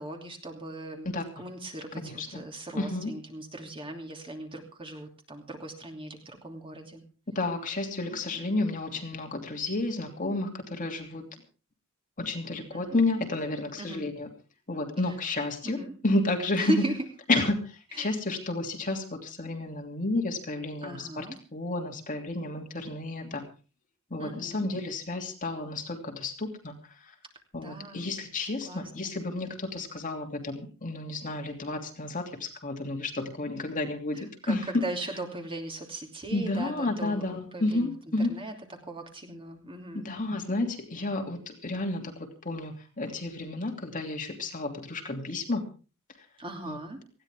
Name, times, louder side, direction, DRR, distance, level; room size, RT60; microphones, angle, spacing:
voice 1, 0.0-1.1 1.4-7.0 12.7-13.0 13.8-14.0 15.6-15.9 16.5-16.9 17.9-18.1 20.8-21.4 24.2-24.7 27.6-28.1 28.5-29.1 34.1-37.9 38.3-38.5 38.8-40.0 46.4-47.0, right 1 dB, 25° right, 2 dB, 2.9 m, -38 dB
voice 2, 2.0-2.4 2.7-3.1 7.3-11.2 12.2-14.3 14.7-16.8 17.3-21.3 21.5-23.5 24.1-27.1 27.5-34.8 36.3-38.3 40.0-45.6 46.6-46.8, left 2 dB, 40° left, 3 dB, 2.8 m, -31 dB
19.5 x 15.5 x 3.6 m, 0.36 s
head